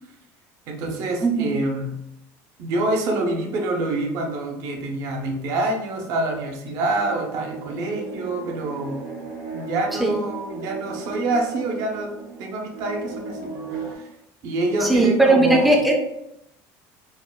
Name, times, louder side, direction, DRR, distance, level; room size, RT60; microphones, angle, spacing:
voice 1, 0.7-2.0 2.6-9.1 9.5-14.1 14.4-15.8, right 2 dB, 50° right, 3 dB, 0.5 m, -26 dB
sound 1, 6.9-14.0, right 4 dB, 75° right, 1.3 m, -36 dB
voice 2, 14.8-15.9, right 2 dB, ahead, 0 dB, 0.3 m, -18 dB
4.2 x 2.1 x 2.3 m, 0.83 s
cardioid pair, 165°, 7 cm